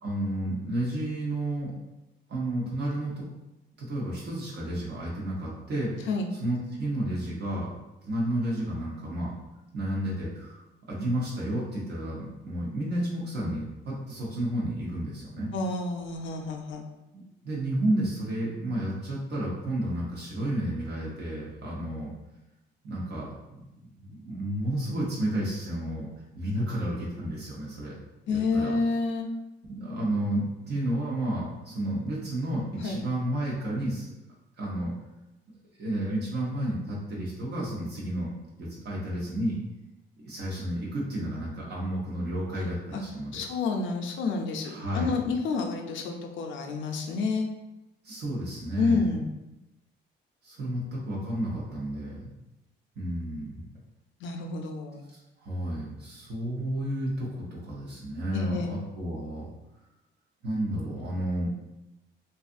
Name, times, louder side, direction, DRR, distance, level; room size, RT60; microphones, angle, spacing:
voice 1, 0.0-1.7 2.3-3.3 3.8-7.7 8.0-9.3 9.7-10.6 10.9-15.5 17.1-22.1 22.8-23.3 24.0-26.1 26.3-27.9 28.3-28.7 29.7-34.1 34.6-34.9 35.8-38.3 38.6-39.6 40.2-43.4 44.6-45.1 48.0-49.1 50.4-52.3 53.0-53.6 55.1-59.4 60.4-61.5, right 1 dB, 60° right, -5 dB, 0.8 m, -31 dB
voice 2, 15.5-16.8 28.3-29.3 32.8-33.0 42.9-43.0 43.3-47.5 48.8-49.3 54.2-55.0 58.3-58.7, left 4 dB, 75° left, 3 dB, 0.5 m, -29 dB
2.6 x 2.4 x 2.5 m, 0.95 s
cardioid pair, 90°, 20 cm